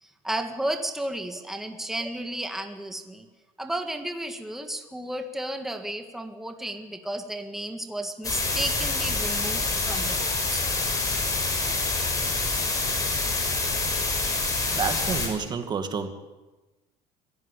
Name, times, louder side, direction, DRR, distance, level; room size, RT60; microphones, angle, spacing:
voice 1, 0.0-3.3 3.6-10.6, right 1 dB, ahead, 5 dB, 1.7 m, -33 dB
sound 1, 8.2-15.3, left 3 dB, 20° left, 6.2 m, -26 dB
voice 2, 14.7-16.1, right 6 dB, 25° right, 7 dB, 2.3 m, -29 dB
26.0 x 16.5 x 8.4 m, 1.1 s
cardioid pair, 155°, 16 cm